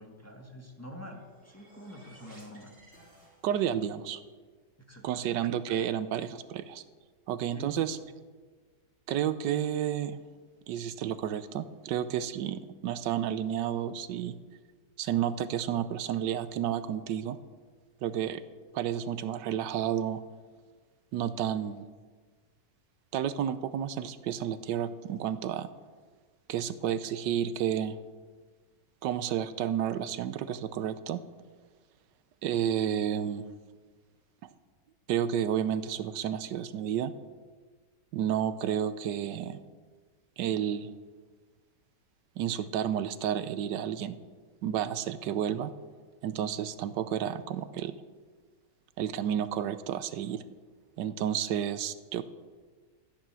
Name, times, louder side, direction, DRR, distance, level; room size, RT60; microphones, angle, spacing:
voice 1, 0.0-3.1 4.8-5.3 7.5-7.8, equal, 10° left, 1 dB, 1.4 m, -47 dB
sound 1, 0.9-3.9, right 1 dB, 45° right, 3.8 m, -57 dB
voice 2, 3.4-4.2 5.0-6.8 7.3-8.0 9.1-10.2 10.7-14.4 15.0-17.4 18.0-18.4 18.7-20.2 21.1-21.9 23.1-25.7 26.5-28.0 29.0-31.2 32.4-33.4 35.1-37.1 38.1-39.6 40.4-40.9 42.4-44.2 44.6-45.7 46.2-47.9 49.0-50.4 51.0-52.2, right 10 dB, 80° right, 13 dB, 1.3 m, -31 dB
13.5 x 10.0 x 6.2 m, 1.4 s
omnidirectional pair, 1.9 m